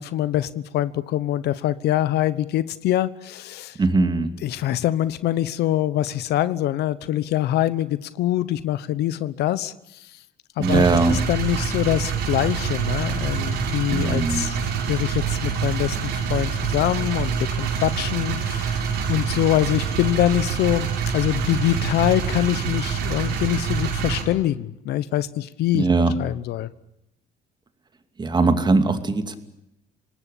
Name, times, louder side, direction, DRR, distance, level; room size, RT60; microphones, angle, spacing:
voice 1, 0.0-3.8 4.4-10.1 10.6-14.6 14.9-20.9 21.1-25.9 26.2-26.7, left 13 dB, 75° left, 15 dB, 1.1 m, -24 dB
voice 2, 3.8-4.3 10.6-11.2 13.9-14.4 25.7-26.1 28.2-29.4, right 3 dB, 25° right, 8 dB, 2.7 m, -20 dB
sound 1, 10.6-24.2, right 6 dB, 90° right, 5.1 m, -26 dB
26.0 x 19.5 x 8.6 m, 0.83 s
cardioid pair, 110°, 17 cm